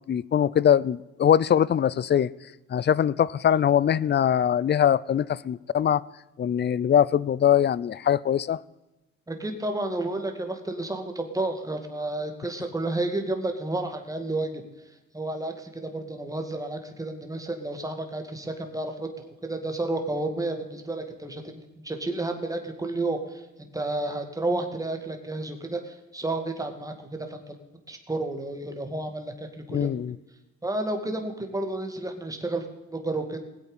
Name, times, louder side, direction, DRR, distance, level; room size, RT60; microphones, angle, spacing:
voice 1, 0.1-2.3 2.7-6.0 6.4-8.6 29.7-30.2, left 9 dB, 35° left, 21 dB, 0.5 m, -22 dB
voice 2, 9.3-14.6 15.1-27.6 27.9-29.9 30.6-33.4, right 2 dB, 10° right, 5 dB, 2.2 m, -31 dB
19.5 x 8.3 x 5.5 m, 1.0 s
cardioid pair, 90°, 30 cm